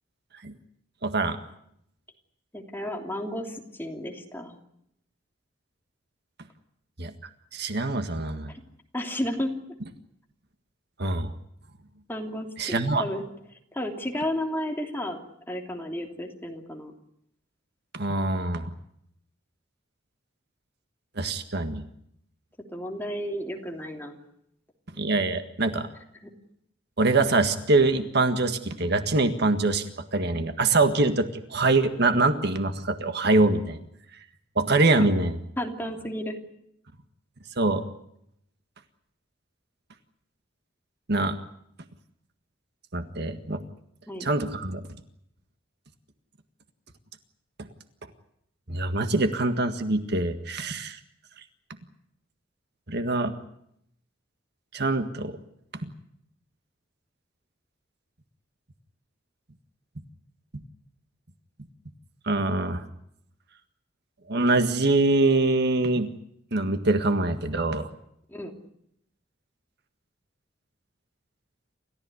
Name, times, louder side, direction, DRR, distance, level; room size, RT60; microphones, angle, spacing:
voice 1, 1.0-1.4 7.0-7.1 7.5-8.5 11.0-11.3 12.6-13.0 17.9-18.7 21.2-21.8 25.0-25.9 27.0-29.8 30.1-33.8 34.5-35.3 37.6-37.8 41.1-41.4 42.9-43.6 44.2-44.8 48.7-51.0 52.9-53.3 54.7-55.4 55.8-55.9 62.2-62.8 64.3-66.1 66.5-67.9, right 2 dB, 60° right, 8 dB, 1.8 m, -24 dB
voice 2, 2.5-4.5 8.9-9.5 12.1-13.3 13.7-15.2 15.5-16.9 22.7-24.2 34.8-35.1 35.6-36.4 44.1-44.3 68.3-68.5, left 1 dB, 10° left, 2 dB, 3.0 m, -32 dB
29.0 x 14.5 x 9.8 m, 0.75 s
head